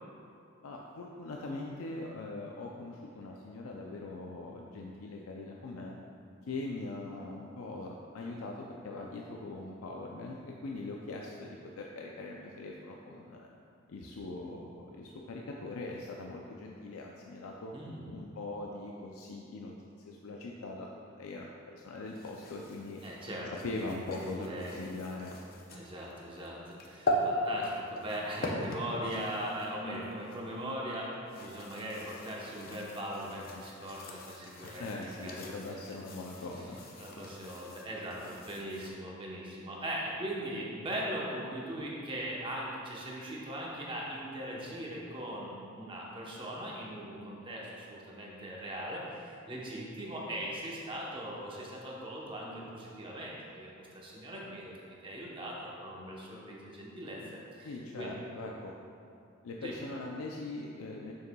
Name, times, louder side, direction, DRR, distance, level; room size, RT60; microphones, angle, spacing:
voice 1, 0.6-6.0 6.5-13.5 13.9-17.7 18.1-19.7 20.1-20.9 21.1-23.0 23.6-25.3 34.8-36.8 57.6-58.7 59.4-61.1, left 2 dB, 85° left, -1 dB, 0.4 m, -41 dB
voice 2, 17.7-18.2 23.0-24.8 25.7-35.8 36.6-36.7 37.0-54.7 55.0-57.2 57.5-58.2 59.6-59.7, right 1 dB, 25° right, -4 dB, 0.9 m, -40 dB
sound 1, 22.1-30.5 31.1-38.9, equal, 45° left, 0.6 m, -40 dB
6.8 x 6.6 x 2.3 m, 2.6 s
head